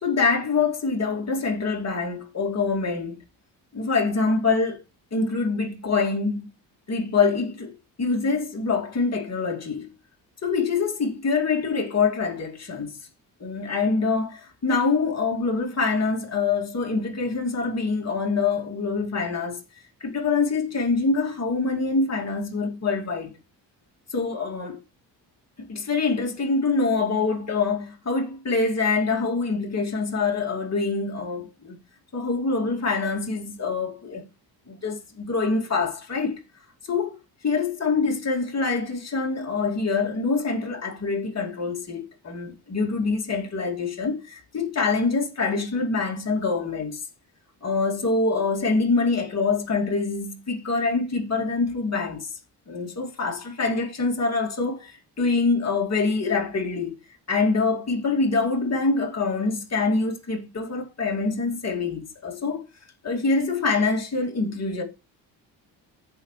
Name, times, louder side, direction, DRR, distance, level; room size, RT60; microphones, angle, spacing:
voice 1, 0.0-3.2 3.7-4.8 5.1-6.5 6.9-9.9 10.4-13.0 13.4-19.6 20.0-23.3 24.1-24.8 25.7-31.8 32.1-34.2 34.7-36.4 36.9-37.2 37.4-47.0 47.6-52.3 52.7-56.9 57.3-62.7 63.0-64.8, left 4 dB, 35° left, 2.7 m, -25 dB
15.0 x 5.4 x 3.3 m
cardioid pair, 80°, 43 cm